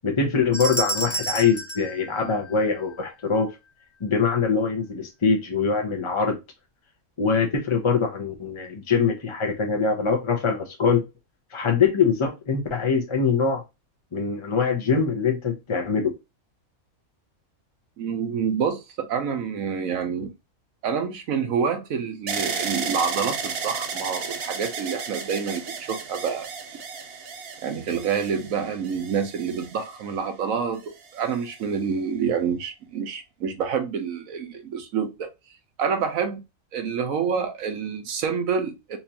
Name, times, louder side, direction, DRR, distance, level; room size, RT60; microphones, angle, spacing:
voice 1, 0.0-3.5 4.0-6.4 7.2-11.0 11.5-13.6 14.1-16.1, left 5 dB, 35° left, 0.4 m, -23 dB
sound 1, 0.5-2.9, right 2 dB, 10° left, 0.8 m, -31 dB
voice 2, 18.0-20.3 20.8-26.5 27.6-35.3 35.8-36.4 36.7-39.0, right 6 dB, 70° right, 1.2 m, -27 dB
sound 2, 22.3-30.3 31.0-31.6, right 5 dB, 55° right, 0.8 m, -33 dB
4.3 x 2.5 x 2.7 m
omnidirectional pair, 1.5 m